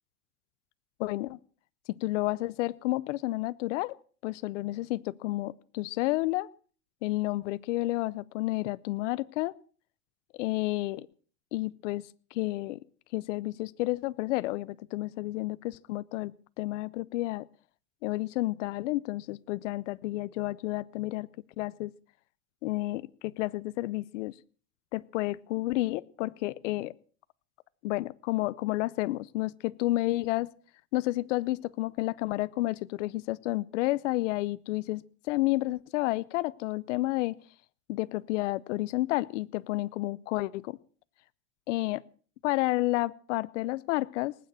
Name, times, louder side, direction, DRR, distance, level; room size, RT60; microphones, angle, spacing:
voice 1, 1.0-1.4 2.0-6.5 7.0-9.5 10.3-11.1 11.5-12.8 13.1-16.3 16.6-17.5 18.0-21.3 21.6-21.9 22.6-24.3 24.9-26.9 27.8-30.5 30.9-37.4 37.9-40.8 41.7-42.0 42.4-44.4, left 18 dB, 85° left, 18 dB, 0.7 m, -31 dB
19.5 x 9.2 x 7.6 m, 0.43 s
supercardioid pair, 120°, 36 cm